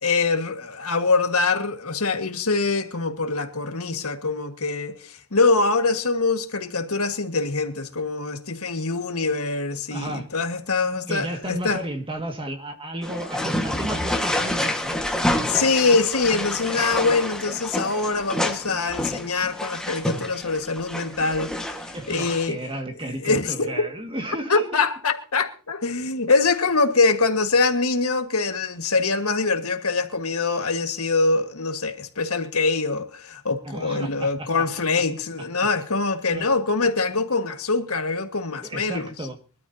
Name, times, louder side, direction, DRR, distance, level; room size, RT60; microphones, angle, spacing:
voice 1, 0.0-11.8 15.4-21.6 22.1-22.6 23.2-23.8 24.5-39.1, left 3 dB, 80° left, 1.7 m, -24 dB
voice 2, 9.9-10.3 11.1-15.0 21.9-24.8 33.6-34.7 34.9-35.0 35.4-35.5 36.3-36.5 38.6-39.4, right 1 dB, 25° right, 2.0 m, -33 dB
sound 1, 13.0-22.5, left 1 dB, 5° left, 1.6 m, -28 dB
24.0 x 13.0 x 2.8 m
head